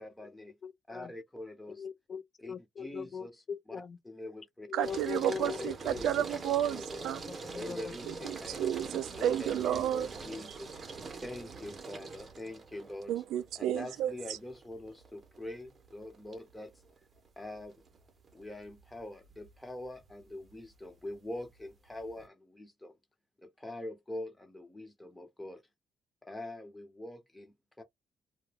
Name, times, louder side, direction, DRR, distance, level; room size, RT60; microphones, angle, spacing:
voice 1, 0.0-0.5 0.9-1.8 2.4-3.4 4.0-4.7 5.4-6.3 6.7-7.0 7.5-8.6 9.1-10.8 11.2-13.1 13.5-16.8 17.4-17.8 18.3-23.0 23.4-25.6 26.2-27.8, left 1 dB, 10° left, 1.1 m, -44 dB
voice 2, 0.6-1.1 1.7-4.0 4.7-6.1 7.3-8.2, left 6 dB, 50° left, 0.5 m, -41 dB
voice 3, 4.7-7.2 8.0-10.1 13.1-14.1, right 11 dB, 85° right, 0.3 m, -31 dB
sound 1, 4.8-22.3, right 4 dB, 40° right, 0.7 m, -45 dB
2.2 x 2.2 x 3.3 m
cardioid pair, 90°, 0 cm